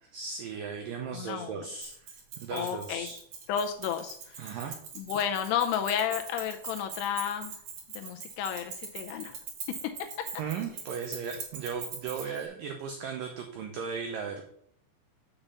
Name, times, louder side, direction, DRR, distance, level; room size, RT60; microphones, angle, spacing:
voice 1, 0.1-2.0 2.4-3.2 4.4-4.8 10.4-14.6, right 6 dB, 90° right, 4 dB, 1.9 m, -36 dB
voice 2, 1.1-1.7 2.5-3.1 3.5-4.6 5.0-7.5 8.0-9.4, left 9 dB, 80° left, 5 dB, 2.5 m, -32 dB
Keys jangling, 1.8-12.4, right 6 dB, 50° right, 2.4 m, -42 dB
7.1 x 5.4 x 6.8 m, 0.69 s
omnidirectional pair, 5.1 m